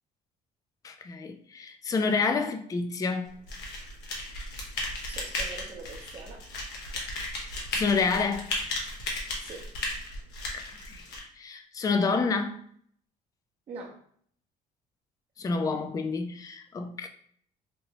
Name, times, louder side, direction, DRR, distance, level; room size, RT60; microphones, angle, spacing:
voice 1, 0.8-3.4 7.5-8.5 10.5-11.0 11.4-12.6 15.4-17.1, left 4 dB, 20° left, 0.3 m, -29 dB
sound 1, 3.5-11.2, left 2 dB, 90° left, 1.0 m, -35 dB
voice 2, 5.1-6.4 9.4-9.7 13.7-14.0, right 3 dB, 40° right, 0.7 m, -43 dB
2.9 x 2.7 x 2.9 m
cardioid pair, 110°, 17 cm